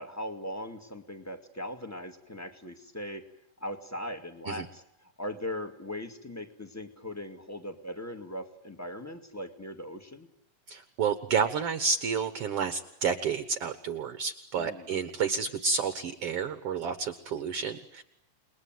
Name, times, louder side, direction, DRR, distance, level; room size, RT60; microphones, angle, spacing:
voice 1, 0.0-3.3 3.6-10.3 14.6-14.9, left 1 dB, 5° left, 7 dB, 1.7 m, -39 dB
voice 2, 10.7-18.0, right 6 dB, 55° right, 11 dB, 1.9 m, -30 dB
29.5 x 21.0 x 9.4 m, 0.81 s
omnidirectional pair, 3.8 m